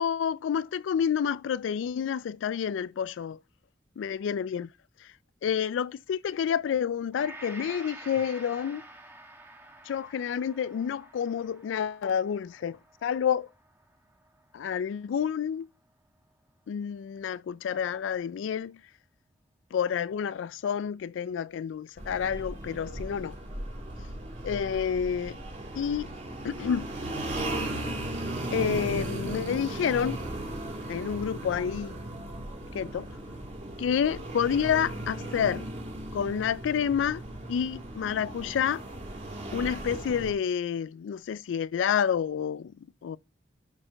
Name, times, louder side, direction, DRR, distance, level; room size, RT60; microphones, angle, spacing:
voice 1, 0.0-3.4 4.0-4.7 5.0-5.1 5.4-8.8 9.9-13.5 14.5-15.7 16.7-18.8 19.7-23.4 24.4-25.4 25.7-26.1 26.4-26.9 28.5-30.2 30.9-32.0 32.7-33.1 33.8-35.7 36.1-37.2 37.5-38.8 39.5-42.7 43.0-43.2, left 7 dB, 85° left, 0.3 m, -29 dB
Gong, 7.1-15.4 15.9-16.1, right 2 dB, 10° right, 1.2 m, -50 dB
sound 1, 22.0-40.3, right 1 dB, 40° right, 1.9 m, -37 dB
6.1 x 4.3 x 5.0 m
head